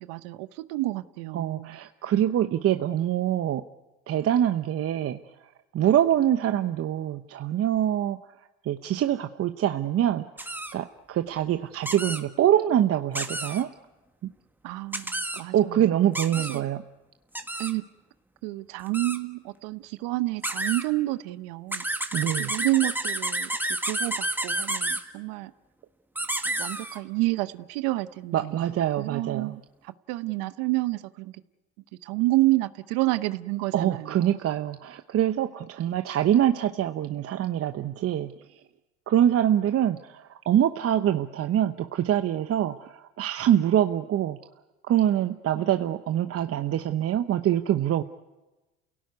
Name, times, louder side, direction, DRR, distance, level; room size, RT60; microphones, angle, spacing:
voice 1, 0.0-1.8 14.6-15.9 16.4-16.7 17.6-17.8 18.4-21.8 22.4-25.5 26.5-28.6 29.0-31.3 32.0-34.4, right 19 dB, 75° right, 14 dB, 0.9 m, -29 dB
voice 2, 1.3-3.6 4.1-5.2 5.7-8.2 8.6-10.3 10.7-13.7 15.5-16.8 22.1-22.5 28.3-29.6 33.7-38.3 39.1-44.4 44.8-48.0, right 11 dB, 45° right, 9 dB, 0.9 m, -24 dB
sound 1, 10.4-10.7 11.8-12.2 13.1-13.6 14.9-15.4 16.1-16.6 17.3-17.7 18.9-19.2 20.4-20.8 21.7-25.0 26.1-27.0, right 1 dB, 5° right, 1.7 m, -30 dB
28.5 x 17.5 x 9.5 m, 1.1 s
supercardioid pair, 85°, 33 cm